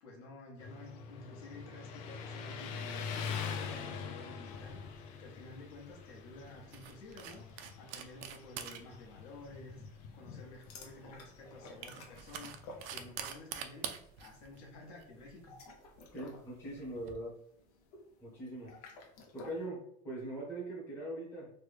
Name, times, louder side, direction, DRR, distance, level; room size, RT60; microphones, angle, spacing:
voice 1, 0.0-7.5 7.8-9.8 10.1-12.6 12.9-15.5, left 2 dB, 65° left, -2 dB, 1.2 m, -52 dB
Motorcycle, 0.6-13.2, left 6 dB, 45° left, 0.4 m, -44 dB
Screw top from a wine bottle off and on, 4.5-17.1, right 8 dB, 60° right, 0.4 m, -48 dB
sound 1, 10.6-13.5 13.8-14.1 15.3-19.7, left 2 dB, 85° left, 0.8 m, -53 dB
voice 2, 16.1-17.4 18.2-18.7 19.3-21.5, right 1 dB, 10° left, -6 dB, 0.8 m, -41 dB
3.3 x 2.2 x 3.3 m, 0.71 s
cardioid pair, 170°, 19 cm